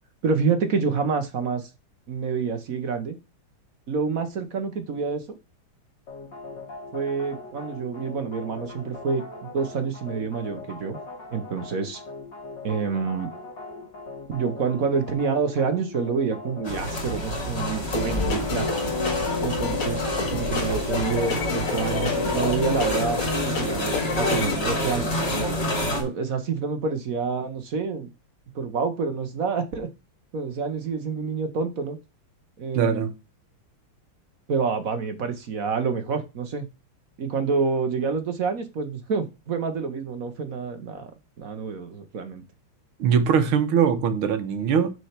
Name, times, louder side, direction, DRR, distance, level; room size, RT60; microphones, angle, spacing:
voice 1, 0.2-1.7 2.1-3.2 3.9-5.2 6.9-11.0 11.3-12.0 12.6-13.3 14.3-18.7 19.4-23.2 23.5-25.6 26.0-28.1 28.5-29.9 30.3-32.0 32.6-33.1 34.5-36.7 37.2-41.1 41.4-42.4, right 5 dB, 50° right, 1.1 m, -28 dB
sound 1, 6.1-24.0, left 3 dB, 55° left, 2.4 m, -40 dB
sound 2, 16.6-26.0, left 1 dB, 30° left, 2.4 m, -28 dB
sound 3, 17.8-24.6, left 4 dB, 70° left, 2.6 m, -29 dB
voice 2, 32.8-33.1 43.0-44.9, right 7 dB, 75° right, 1.8 m, -21 dB
6.3 x 4.5 x 5.7 m
omnidirectional pair, 2.4 m